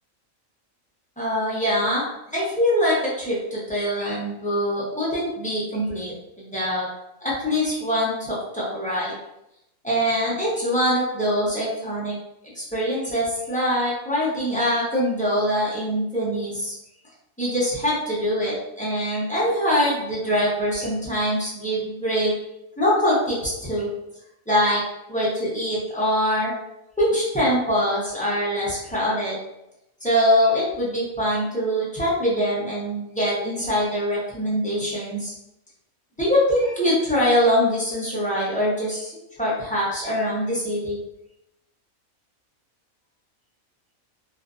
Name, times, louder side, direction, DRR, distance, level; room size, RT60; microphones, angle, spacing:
voice 1, 1.2-2.0 2.3-6.9 7.2-9.1 9.8-12.2 12.5-16.7 17.4-22.3 22.8-23.9 24.5-24.8 25.1-26.5 27.0-29.4 30.0-35.3 36.2-39.1 39.4-41.0, equal, 10° left, -9 dB, 0.4 m, -23 dB
2.5 x 2.5 x 2.4 m, 0.85 s
omnidirectional pair, 1.4 m